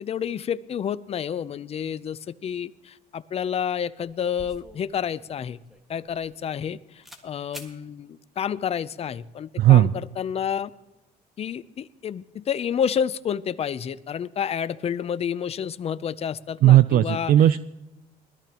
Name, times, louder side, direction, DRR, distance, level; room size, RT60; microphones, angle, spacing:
voice 1, 0.0-5.6 5.9-10.7 11.4-17.3, left 8 dB, 35° left, 15 dB, 0.5 m, -29 dB
sound 1, 4.4-6.7 7.0-7.3 7.5-7.8, left 1 dB, ahead, 1.7 m, -46 dB
voice 2, 9.6-9.9 16.6-17.6, right 13 dB, 55° right, 14 dB, 0.4 m, -16 dB
21.0 x 13.0 x 3.0 m, 0.96 s
cardioid pair, 110°, 17 cm